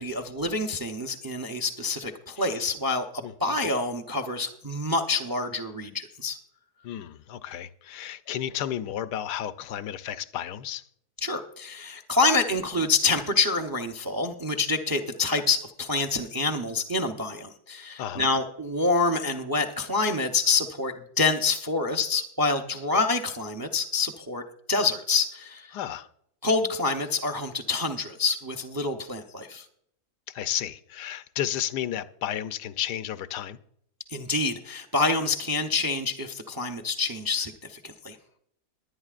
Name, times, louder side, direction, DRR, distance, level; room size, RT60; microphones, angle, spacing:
voice 1, 0.0-6.4 11.2-24.4 24.7-25.8 26.4-29.7 34.1-38.2, left 3 dB, 30° right, 0.4 m, -27 dB
voice 2, 6.8-10.8 18.0-18.3 25.7-26.1 30.3-33.6, left 11 dB, 90° left, 1.2 m, -32 dB
21.5 x 9.6 x 2.5 m
omnidirectional pair, 1.7 m